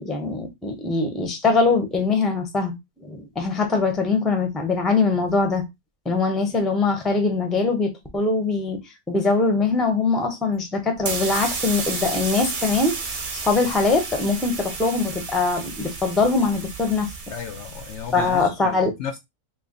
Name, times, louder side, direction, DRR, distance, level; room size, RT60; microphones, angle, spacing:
voice 1, 0.0-2.7 3.0-5.6 6.0-8.8 9.1-17.1 18.1-18.9, left 3 dB, ahead, 0.5 m, -22 dB
sound 1, 11.0-18.4, right 4 dB, 45° right, 0.7 m, -32 dB
voice 2, 17.3-19.2, left 7 dB, 65° left, 0.7 m, -34 dB
3.1 x 2.5 x 3.8 m
omnidirectional pair, 1.5 m